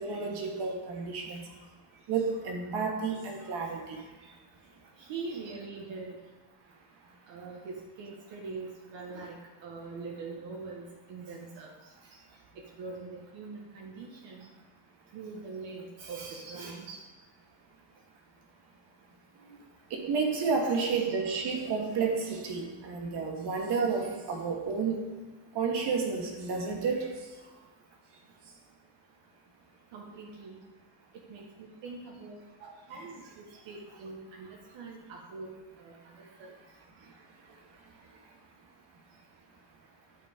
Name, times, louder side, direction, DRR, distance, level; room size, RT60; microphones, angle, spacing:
voice 1, 0.0-1.5 2.1-4.0 16.3-16.6 16.9-17.0 19.9-25.2 25.5-27.3 32.9-33.1, right 5 dB, 65° right, 1 dB, 1.6 m, -31 dB
voice 2, 5.0-6.2 7.3-11.7 12.5-14.5 15.1-16.9 19.4-19.6 20.6-20.9 25.7-25.8 29.9-30.6 31.3-36.5, right 4 dB, 85° right, -1 dB, 1.4 m, -43 dB
12.0 x 5.3 x 3.7 m, 1.3 s
cardioid pair, 175°, 44 cm